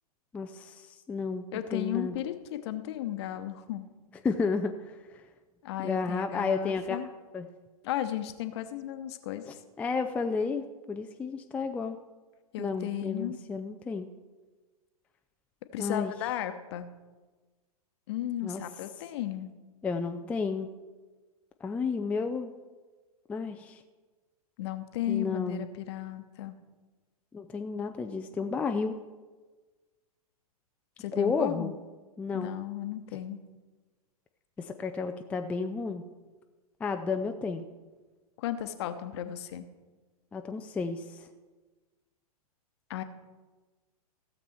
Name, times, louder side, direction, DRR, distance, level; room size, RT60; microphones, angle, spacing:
voice 1, 0.3-2.1 4.2-5.2 5.8-7.0 7.3-7.5 9.5-12.0 12.6-14.1 15.8-16.1 18.4-18.6 19.8-20.7 21.6-22.5 23.3-23.8 25.1-25.7 27.3-29.0 31.1-31.7 32.2-32.6 34.6-36.0 36.8-37.7 40.3-41.3, left 4 dB, 5° left, 6 dB, 0.4 m, -32 dB
voice 2, 1.5-3.9 5.6-7.1 7.8-9.4 12.5-13.4 15.7-16.9 18.1-19.5 24.6-26.6 31.0-31.8 32.3-33.4 38.4-39.7 42.9-43.0, left 12 dB, 45° left, 10 dB, 0.9 m, -34 dB
16.0 x 7.2 x 4.5 m, 1.3 s
figure-of-eight pair, 105°, 19 cm